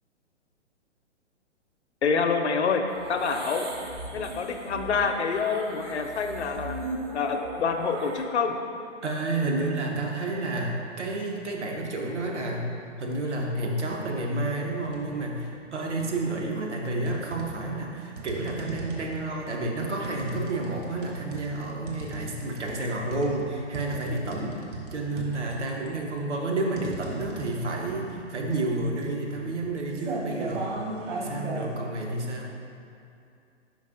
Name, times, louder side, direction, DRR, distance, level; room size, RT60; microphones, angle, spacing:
voice 1, 2.0-2.8 3.1-3.7 4.1-6.8 7.1-8.6, left 5 dB, 65° left, 5 dB, 0.6 m, -27 dB
sound 1, 2.9-8.2, right 1 dB, 25° right, 0.4 m, -38 dB
voice 2, 9.0-12.7 13.0-24.6 24.9-30.8 31.1-32.5, right 2 dB, 70° right, -1 dB, 1.1 m, -30 dB
sound 2, 14.8-15.2 15.6-16.5 17.1-31.7, right 2 dB, 45° right, 1.2 m, -38 dB
5.3 x 5.1 x 3.8 m, 2.5 s
figure-of-eight pair, 125°, 36 cm